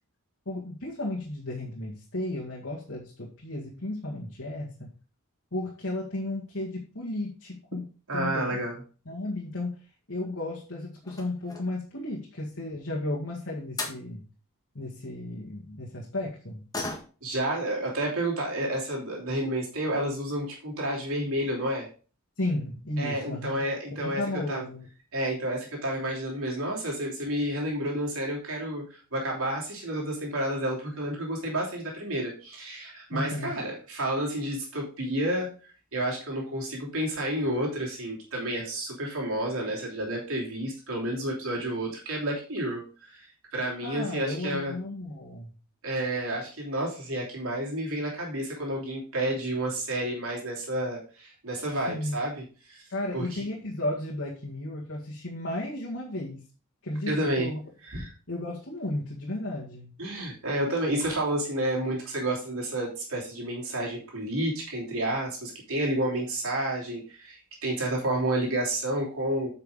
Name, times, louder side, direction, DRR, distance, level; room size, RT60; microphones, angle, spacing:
voice 1, 0.5-4.9 5.5-7.8 8.1-8.6 9.1-9.7 10.1-14.2 14.8-16.6 22.4-23.6 23.9-24.9 33.1-33.6 43.8-45.5 51.9-52.2 52.9-56.5 56.8-57.6 58.3-59.9, left 1 dB, 60° left, -3 dB, 1.9 m, -34 dB
voice 2, 8.1-8.8 17.2-21.9 23.0-24.2 24.5-24.7 25.1-35.5 35.9-43.3 43.5-44.7 45.8-52.8 53.1-53.4 57.1-57.5 57.8-58.1 60.0-69.5, right 1 dB, 65° right, -2 dB, 3.0 m, -30 dB
sound 1, 10.0-10.5 11.0-11.9 13.4-13.5 13.8-14.0 16.7-17.4 17.7-17.8 18.3-18.4 19.2-19.3 19.6-19.7 20.1-20.4 20.7-20.8 21.1-21.2, left 2 dB, 15° left, 1.6 m, -38 dB
9.0 x 5.8 x 3.7 m, 0.36 s
head